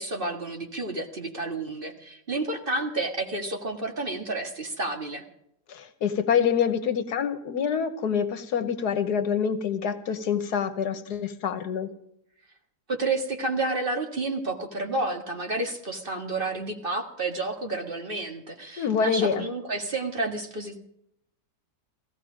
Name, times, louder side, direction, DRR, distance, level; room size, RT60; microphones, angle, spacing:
voice 1, 0.0-5.2 12.9-20.8, right 2 dB, 35° right, 3 dB, 1.8 m, -30 dB
voice 2, 5.7-11.9 18.8-19.4, left 7 dB, 75° left, 10 dB, 1.5 m, -26 dB
17.0 x 14.5 x 5.0 m, 0.76 s
omnidirectional pair, 1.7 m